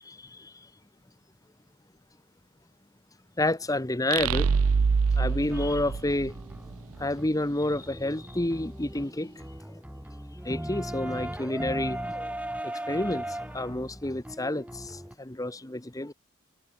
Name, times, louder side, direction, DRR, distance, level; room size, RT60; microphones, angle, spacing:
voice 1, 0.1-0.5 3.4-4.5 5.2-6.3 7.0-9.5 10.4-12.3 12.6-16.1, left 1 dB, 15° left, 1.2 m, -30 dB
sound 1, 4.1-6.7, right 5 dB, 75° right, 0.5 m, -25 dB
sound 2, 5.5-15.1, right 1 dB, 5° right, 2.3 m, -38 dB
head